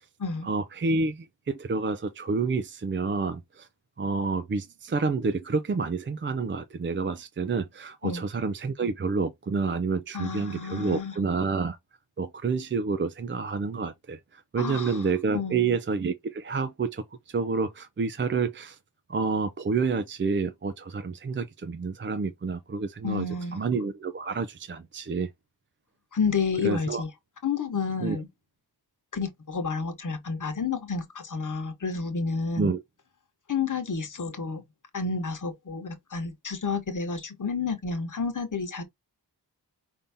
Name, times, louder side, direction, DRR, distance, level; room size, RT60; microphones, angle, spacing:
voice 1, 0.4-3.7 4.0-11.8 12.2-18.8 19.1-23.3 23.5-25.3 26.6-27.0 28.0-28.2 32.5-32.8, right 4 dB, 30° right, 0.4 m, -29 dB
voice 2, 10.1-11.1 14.6-15.0 15.3-15.7 23.0-23.6 26.1-27.1 27.4-28.3 29.1-32.7 33.5-34.6 34.9-38.8, left 5 dB, 50° left, 1.2 m, -30 dB
5.3 x 2.7 x 3.5 m
wide cardioid pair, 170°, 40 cm